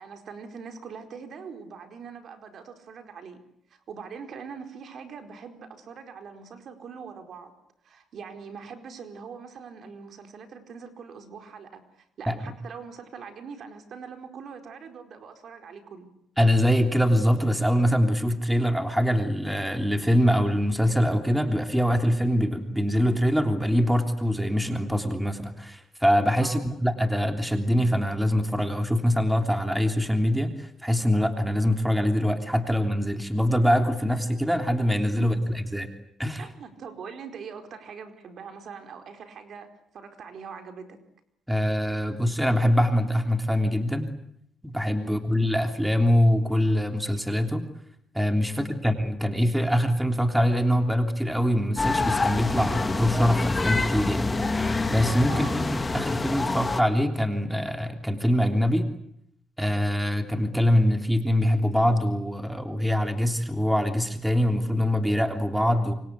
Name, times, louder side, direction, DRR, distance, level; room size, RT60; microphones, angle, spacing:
voice 1, 0.0-3.4 3.7-7.5 7.8-16.1 26.4-26.7 35.2-35.6 36.4-41.0 45.0-45.3 48.5-48.7 55.3-55.7, right 6 dB, 60° right, 6 dB, 4.5 m, -42 dB
voice 2, 16.4-35.9 36.2-36.4 41.5-44.1 44.6-47.7 48.1-54.3 54.9-58.9 59.6-65.9, equal, 5° right, 6 dB, 3.3 m, -24 dB
sound 1, 51.8-56.8, left 3 dB, 25° left, 2.2 m, -27 dB
28.0 x 25.5 x 8.3 m, 0.73 s
cardioid pair, 90°, 0 cm